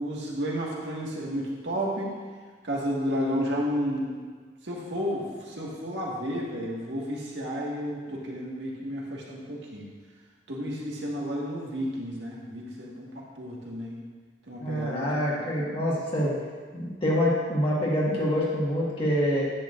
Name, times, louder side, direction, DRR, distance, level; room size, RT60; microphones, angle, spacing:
voice 1, 0.0-2.1 2.6-4.2 4.6-9.9 10.5-14.0 14.5-15.5, equal, 75° right, -4 dB, 1.7 m, -32 dB
voice 2, 14.6-16.3 16.7-19.4, equal, 30° left, -5 dB, 1.6 m, -26 dB
10.5 x 8.4 x 2.5 m, 1.5 s
head